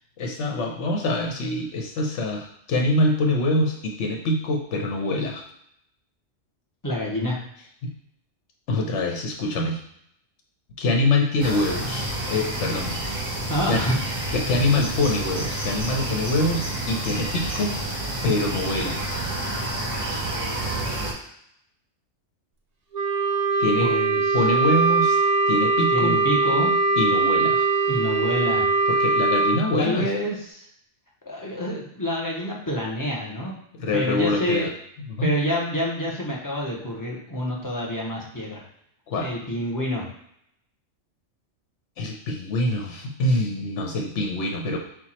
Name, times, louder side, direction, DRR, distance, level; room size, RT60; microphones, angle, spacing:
voice 1, 0.2-5.4 8.7-9.8 10.8-13.0 13.6-13.8 14.3-17.7 18.2-19.1 23.6-23.9 24.3-25.2 25.5-26.2 27.0-27.7 28.9-30.1 33.8-34.7 35.1-35.3 39.1-39.3 42.0-44.8, left 2 dB, 70° left, 1 dB, 1.1 m, -25 dB
voice 2, 6.8-7.4 13.5-14.0 23.8-24.4 25.9-26.7 27.9-28.7 29.8-30.7 31.3-33.5 33.9-34.7 35.2-38.6 39.2-40.1, equal, 20° left, -4 dB, 0.8 m, -27 dB
sound 1, 11.4-21.1, right 1 dB, 30° right, 0.9 m, -29 dB
Wind instrument woodwind instrument, 22.9-29.6, right 3 dB, 55° right, 0.4 m, -21 dB
4.4 x 2.3 x 4.2 m, 0.73 s
omnidirectional pair, 1.3 m